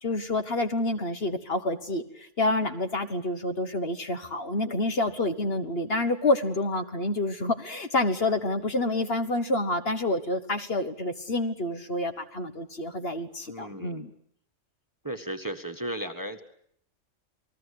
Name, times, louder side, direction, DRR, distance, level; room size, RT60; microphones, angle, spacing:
voice 1, 0.0-14.1, left 2 dB, 50° left, 8 dB, 1.6 m, -28 dB
voice 2, 13.5-14.1 15.0-16.4, right 1 dB, 15° right, 7 dB, 1.5 m, -35 dB
28.5 x 20.0 x 8.5 m, 0.68 s
omnidirectional pair, 1.3 m